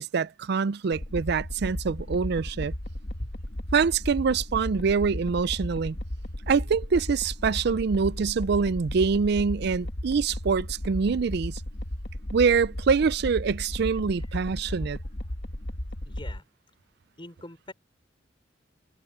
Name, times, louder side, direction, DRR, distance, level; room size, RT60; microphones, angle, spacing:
voice 1, 0.0-2.7 3.7-6.0 6.5-11.6 12.3-15.0, right 5 dB, 60° right, 0.4 m, -25 dB
sound 1, 0.9-16.4, left 1 dB, 65° left, 1.7 m, -35 dB
voice 2, 16.1-16.4 17.2-17.7, left 1 dB, 25° left, 5.9 m, -44 dB
head